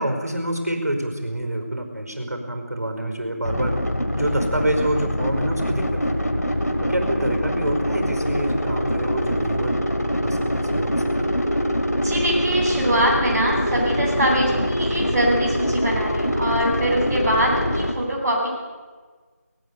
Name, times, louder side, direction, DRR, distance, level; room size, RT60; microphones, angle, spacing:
voice 1, 0.0-3.7 4.1-6.4 6.8-9.8 10.2-11.3, right 1 dB, 70° right, 5 dB, 5.0 m, -27 dB
sound 1, 3.4-17.9, equal, 70° left, 3.4 m, -24 dB
voice 2, 11.9-18.5, equal, 10° right, -10 dB, 5.1 m, -23 dB
21.0 x 18.5 x 8.4 m, 1.4 s
figure-of-eight pair, 175°, 9 cm